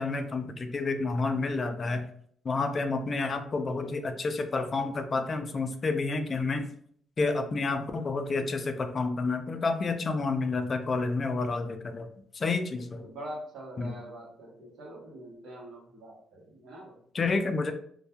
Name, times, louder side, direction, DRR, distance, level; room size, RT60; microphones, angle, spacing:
voice 1, 0.0-2.0 2.4-6.7 7.2-12.1 12.3-13.0 13.8-13.9 17.1-17.7, left 3 dB, 40° left, 7 dB, 0.3 m, -29 dB
voice 2, 12.7-17.0, right 1 dB, 80° right, -3 dB, 0.9 m, -44 dB
2.2 x 2.2 x 2.7 m, 0.63 s
cardioid pair, 90°, 0 cm